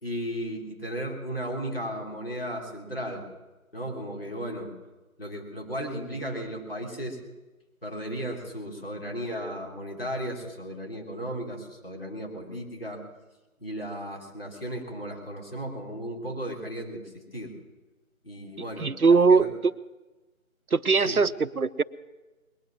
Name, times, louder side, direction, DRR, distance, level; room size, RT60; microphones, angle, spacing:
voice 1, 0.0-3.3 3.7-4.7 5.2-7.2 7.8-13.0 13.6-17.5 18.2-19.5 21.0-21.2, equal, 40° left, 0 dB, 3.5 m, -35 dB
voice 2, 18.8-19.7 20.7-21.8, right 4 dB, 90° right, 14 dB, 0.9 m, -21 dB
21.0 x 9.5 x 7.1 m, 1.1 s
figure-of-eight pair, 170°, 43 cm